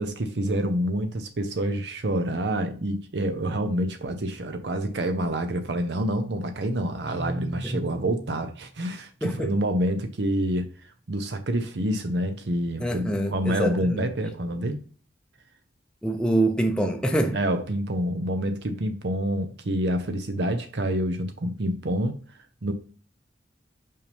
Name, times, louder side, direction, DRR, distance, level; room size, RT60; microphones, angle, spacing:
voice 1, 0.0-10.7 11.1-14.8 17.3-22.2 22.6-22.7, right 1 dB, 65° right, 0.7 m, -27 dB
Guitar, 7.1-8.8, right 1 dB, 25° right, 2.0 m, -36 dB
voice 2, 12.8-14.0 16.0-17.4, right 1 dB, 5° left, 0.6 m, -25 dB
5.5 x 5.3 x 3.4 m
head